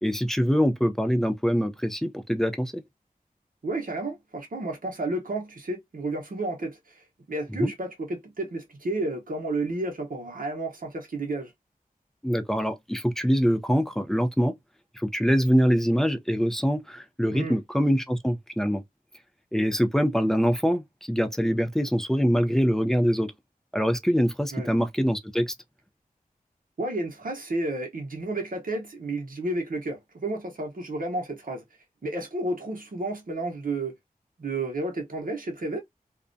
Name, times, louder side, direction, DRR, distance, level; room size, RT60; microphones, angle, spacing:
voice 1, 0.0-2.8 7.6-7.7 12.2-14.5 15.0-18.8 19.5-23.3 23.7-25.5, equal, 5° left, 0.4 m, -24 dB
voice 2, 3.6-11.5 17.3-17.6 24.5-24.7 26.8-31.6 32.0-33.9 34.4-35.8, right 2 dB, 65° right, 0.8 m, -31 dB
2.4 x 2.1 x 2.5 m
wide cardioid pair, 70°, 15 cm